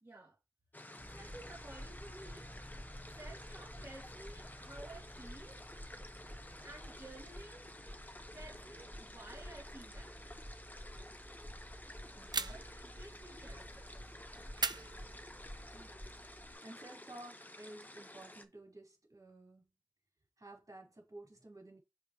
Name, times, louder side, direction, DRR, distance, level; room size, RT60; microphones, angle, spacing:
voice 1, 0.0-0.4 1.1-2.5 3.1-5.6 6.6-7.7 8.3-10.3 12.5-13.9, right 2 dB, 40° right, 2.3 m, -53 dB
sound 1, 0.7-18.5, left 1 dB, 25° left, 0.9 m, -52 dB
sound 2, 1.0-16.5, equal, 15° right, 2.2 m, -52 dB
voice 2, 12.1-12.6 15.7-16.0 16.6-19.7 20.4-21.8, right 1 dB, 60° right, 4.3 m, -53 dB
sound 3, 12.3-12.9 14.6-15.6, right 4 dB, 90° right, 0.5 m, -38 dB
6.7 x 5.2 x 3.1 m
wide cardioid pair, 50°, 7 cm